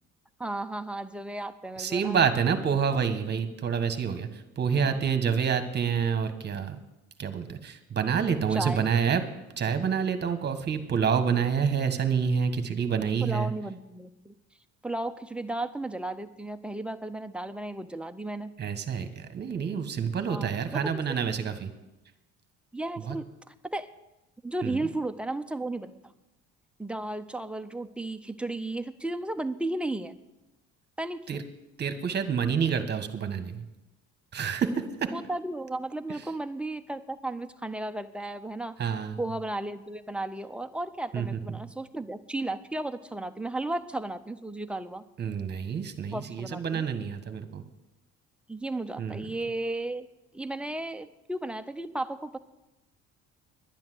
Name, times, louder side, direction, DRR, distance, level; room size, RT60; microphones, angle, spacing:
voice 1, 0.4-2.3 4.8-5.0 8.5-8.9 13.2-14.3 14.8-18.5 20.3-21.0 22.7-23.9 24.4-26.0 26.8-30.1 31.0-31.4 35.1-38.8 39.2-45.0 46.1-46.9 48.5-50.1 50.3-52.4, right 2 dB, 5° right, 8 dB, 0.5 m, -34 dB
voice 2, 1.8-6.8 7.2-9.2 9.6-13.5 18.6-21.7 23.1-23.2 24.6-24.9 31.3-31.4 31.8-33.6 34.3-35.1 38.8-39.2 41.1-41.6 45.2-47.6 49.0-49.3, right 6 dB, 35° right, 9 dB, 1.3 m, -28 dB
10.5 x 10.5 x 7.7 m, 0.99 s
cardioid pair, 130°, 30 cm